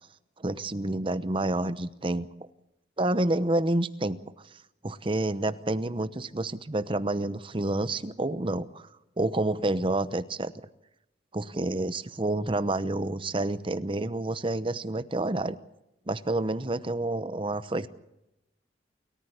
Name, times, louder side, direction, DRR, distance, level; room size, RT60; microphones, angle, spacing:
voice 1, 0.4-2.3 3.0-4.2 4.8-8.9 9.2-10.5 11.3-15.6 16.1-17.9, right 2 dB, 30° right, 14 dB, 0.9 m, -29 dB
29.0 x 14.0 x 8.1 m, 0.90 s
head